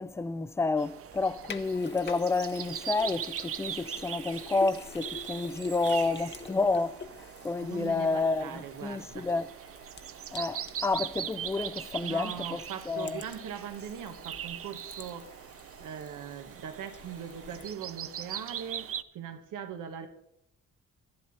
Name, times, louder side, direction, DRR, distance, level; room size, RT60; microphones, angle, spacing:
voice 1, 0.0-9.5 10.3-12.6 12.9-13.2, left 3 dB, 10° left, 0.4 m, -30 dB
sound 1, 0.8-19.0, right 10 dB, 45° right, 0.5 m, -41 dB
Sink (filling or washing), 1.1-17.7, left 6 dB, 35° left, 0.8 m, -48 dB
voice 2, 7.6-9.3 12.0-15.3 15.8-18.9 19.1-20.1, right 8 dB, 85° right, 1.4 m, -40 dB
11.5 x 10.5 x 4.2 m
cardioid pair, 110°, 31 cm